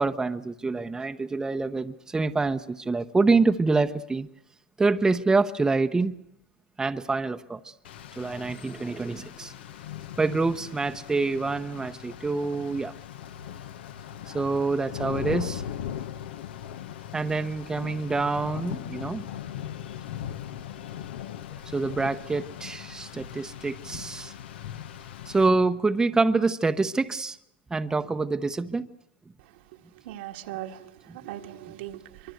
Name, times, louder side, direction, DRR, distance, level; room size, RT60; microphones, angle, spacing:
voice 1, 0.0-4.3 4.8-6.2 6.8-7.7 8.2-9.5 10.2-12.9 14.3-15.6 17.1-19.2 21.7-24.3 25.3-27.4 27.7-28.9 31.1-31.2, right 3 dB, 10° right, 7 dB, 0.9 m, -26 dB
Rain, 7.8-25.5, left 10 dB, 80° left, 1.2 m, -39 dB
voice 2, 30.0-32.3, right 13 dB, 70° right, 5 dB, 1.8 m, -39 dB
24.5 x 24.0 x 8.1 m, 0.76 s
hypercardioid pair, 115°, 6 cm